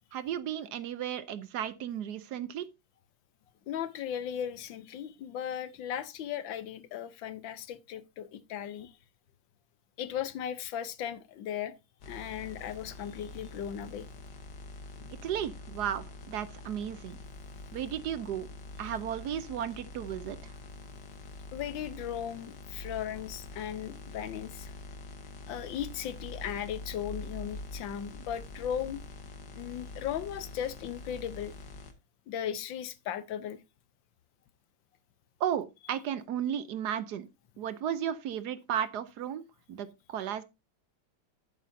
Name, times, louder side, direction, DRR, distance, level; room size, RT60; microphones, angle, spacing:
voice 1, 0.1-2.6 15.2-17.2 17.7-18.5 18.8-20.5 35.4-37.3 37.6-39.4 39.7-40.4, right 9 dB, 70° right, 1.1 m, -34 dB
voice 2, 3.7-8.9 10.0-11.7 12.1-14.1 21.5-24.7 25.5-29.0 29.6-31.5 32.3-33.6, left 9 dB, 85° left, 1.6 m, -37 dB
sound 1, 12.0-31.9, left 2 dB, 65° left, 1.7 m, -45 dB
11.5 x 8.5 x 2.7 m
omnidirectional pair, 2.0 m